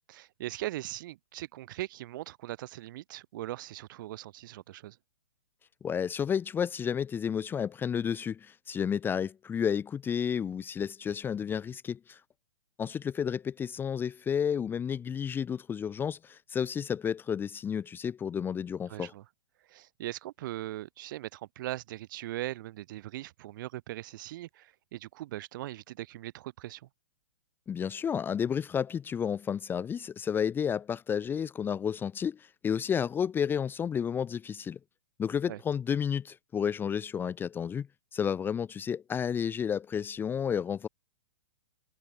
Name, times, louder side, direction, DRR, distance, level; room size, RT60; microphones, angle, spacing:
voice 1, 0.1-5.0 18.9-19.2 19.7-26.9 35.5-35.6, right 15 dB, 50° right, 5.9 m, -40 dB
voice 2, 5.8-12.2 12.8-19.1 27.7-34.8 35.2-37.9 38.1-40.9, left 7 dB, 15° left, 1.0 m, -31 dB
figure-of-eight pair, 115°, 14 cm